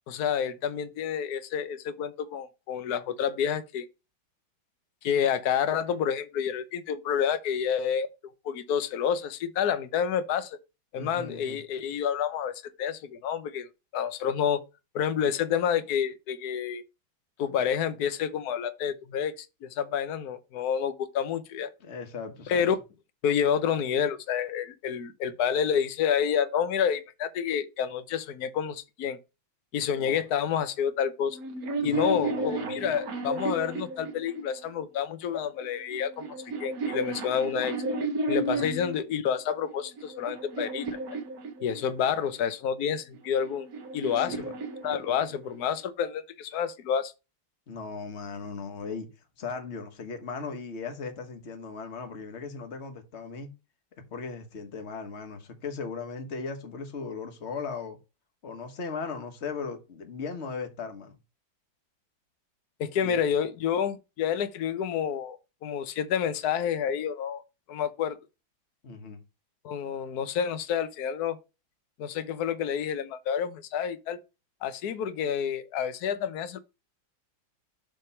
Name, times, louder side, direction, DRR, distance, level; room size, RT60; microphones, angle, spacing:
voice 1, 0.1-3.9 5.0-8.1 8.4-10.6 10.9-13.7 13.9-14.6 14.9-16.8 17.4-21.7 22.5-22.8 23.2-29.2 29.7-31.4 31.8-36.3 36.6-37.7 38.3-41.0 41.6-43.7 43.9-44.5 44.8-47.1 62.8-67.4 67.7-68.2 69.6-71.4 72.0-74.2 74.6-76.6, left 8 dB, 60° left, 1.2 m, -29 dB
voice 2, 10.9-11.6 21.8-22.6 30.0-30.2 31.8-32.7 38.5-38.7 44.1-44.5 47.7-49.1 49.4-53.5 54.1-58.0 58.4-61.1 63.0-63.2 68.8-69.2, left 5 dB, 35° left, 1.5 m, -38 dB
sound 1, 31.3-34.7 35.6-39.0 39.7-42.1 43.1-45.5, right 2 dB, 50° right, 1.7 m, -33 dB
7.7 x 3.5 x 5.7 m
omnidirectional pair, 2.2 m